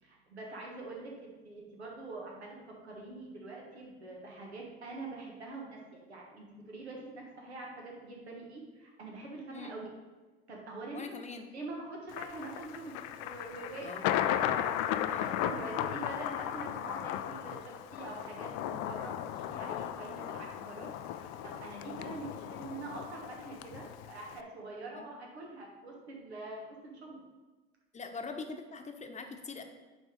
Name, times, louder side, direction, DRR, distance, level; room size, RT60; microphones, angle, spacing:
voice 1, 0.0-2.6 2.8-9.9 10.5-11.2 11.5-27.2, right 2 dB, 90° right, -1 dB, 1.3 m, -45 dB
voice 2, 10.9-11.5 13.8-14.1 15.1-15.2 24.9-25.1 27.9-29.6, left 4 dB, 20° left, 5 dB, 1.0 m, -43 dB
Thunder, 12.1-24.4, left 11 dB, 55° left, 0.5 m, -36 dB
9.3 x 3.5 x 5.2 m, 1.3 s
hypercardioid pair, 70°, 32 cm